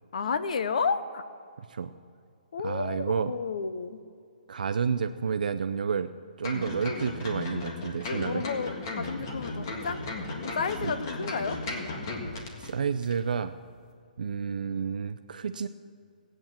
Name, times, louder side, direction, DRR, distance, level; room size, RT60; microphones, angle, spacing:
voice 1, 0.1-1.2 2.5-4.0 8.2-10.0 10.4-11.6, left 5 dB, 50° left, 12 dB, 0.7 m, -31 dB
voice 2, 2.6-3.3 4.5-6.1 6.4-8.4 10.8-10.9 12.6-13.5 14.2-15.7, right 6 dB, 65° right, 9 dB, 0.6 m, -30 dB
sound 1, 6.4-12.7 13.0-13.1, left 2 dB, 30° left, 1.6 m, -35 dB
16.5 x 8.9 x 7.3 m, 2.4 s
hypercardioid pair, 175°, 5 cm